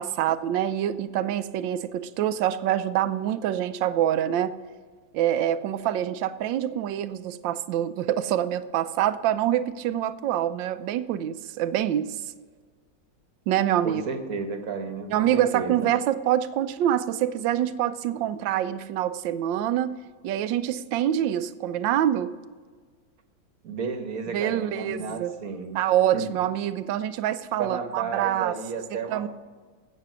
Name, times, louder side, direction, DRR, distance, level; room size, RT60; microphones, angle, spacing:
voice 1, 0.0-4.5 5.1-12.2 13.5-14.0 15.1-19.9 20.2-22.3 24.3-25.3 25.7-28.5 29.1-29.3, right 11 dB, 75° right, 13 dB, 1.3 m, -25 dB
voice 2, 13.8-15.9 23.6-25.8 26.1-26.3 27.6-29.3, right 5 dB, 50° right, 7 dB, 1.4 m, -32 dB
15.5 x 6.7 x 6.1 m, 1.5 s
omnidirectional pair, 2.1 m